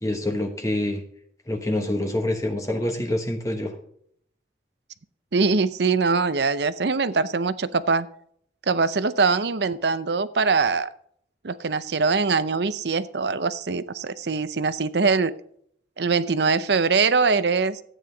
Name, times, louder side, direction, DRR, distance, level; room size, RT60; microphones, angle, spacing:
voice 1, 0.0-1.0 1.5-3.8, left 1 dB, 20° left, 2 dB, 1.2 m, -26 dB
voice 2, 5.3-8.1 8.7-10.9 11.4-15.3 16.0-17.8, right 4 dB, 70° right, 14 dB, 0.6 m, -22 dB
13.5 x 9.1 x 3.9 m, 0.66 s
head